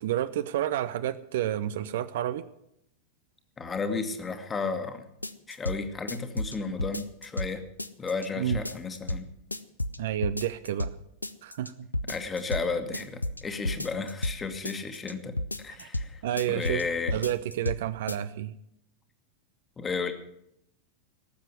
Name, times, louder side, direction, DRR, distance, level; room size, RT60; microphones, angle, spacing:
voice 1, 0.0-2.5 8.4-8.6 10.0-10.9 11.4-11.9 15.8-15.9 16.2-16.8 17.1-18.5, right 12 dB, 55° right, 14 dB, 0.6 m, -30 dB
voice 2, 3.6-5.1 5.5-7.6 8.0-9.3 12.1-16.2 16.5-17.1 19.8-20.1, left 4 dB, 20° left, 8 dB, 1.7 m, -33 dB
sound 1, 5.2-5.8 6.1-7.5 7.8-8.3 8.5-9.2 9.5-10.0 10.2-10.9 11.2-11.7 11.9-12.6 12.9-14.4 14.6-15.1 15.4-16.1 16.4-16.8 17.1-17.8 18.1-18.2, left 1 dB, 85° left, 0.6 m, -31 dB
18.0 x 7.4 x 8.1 m, 0.76 s
figure-of-eight pair, 90°, 0 cm